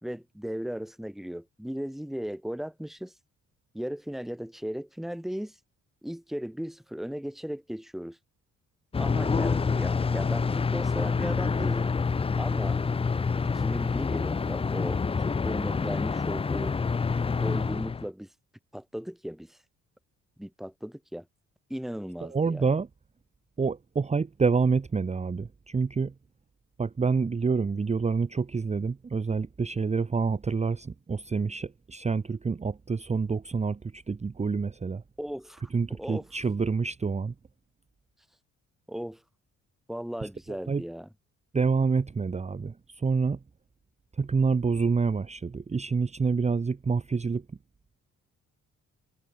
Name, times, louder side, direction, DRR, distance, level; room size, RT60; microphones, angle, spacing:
voice 1, 0.0-3.1 3.7-5.6 6.0-8.2 9.0-11.9 12.4-12.8 13.5-16.8 17.4-18.3 18.7-19.6 20.4-21.2 21.7-22.7 35.2-36.2 38.9-39.2 39.9-41.1, equal, ahead, 1.6 m, -37 dB
sound 1, 8.9-18.1, left 5 dB, 20° left, 0.5 m, -27 dB
voice 2, 22.2-22.9 23.6-26.1 26.8-35.0 35.7-37.3 40.2-40.3 40.7-40.8 41.5-43.4 44.1-47.4, right 5 dB, 20° right, 0.9 m, -27 dB
cardioid pair, 90°, 30 cm